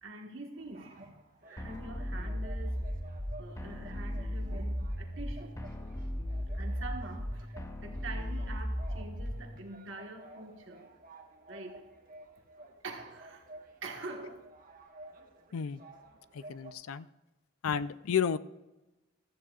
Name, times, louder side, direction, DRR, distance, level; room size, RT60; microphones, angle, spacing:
voice 1, 0.0-1.2 1.4-2.8 3.4-5.6 6.5-10.9 11.5-11.9 12.8-13.5 13.8-14.5, right 2 dB, 60° right, 3 dB, 1.5 m, -45 dB
sound 1, 0.6-16.7, right 2 dB, 40° right, 1.4 m, -54 dB
sound 2, 1.6-9.6, equal, 15° left, 0.7 m, -36 dB
voice 2, 16.3-17.1 17.6-18.4, left 7 dB, 90° left, 15 dB, 0.5 m, -31 dB
15.5 x 13.0 x 2.4 m, 1.0 s
head